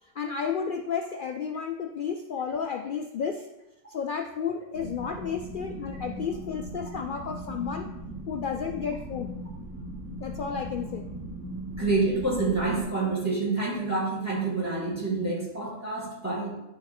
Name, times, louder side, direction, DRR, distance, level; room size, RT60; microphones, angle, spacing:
voice 1, 0.0-3.5 3.9-7.9 8.3-9.3 10.2-11.1, left 6 dB, 70° left, 4 dB, 0.5 m, -32 dB
sound 1, 4.7-12.8, right 1 dB, 65° right, 1.3 m, -38 dB
voice 2, 11.8-16.5, right 3 dB, 10° right, -5 dB, 2.3 m, -28 dB
9.6 x 4.1 x 4.2 m, 0.92 s
omnidirectional pair, 1.4 m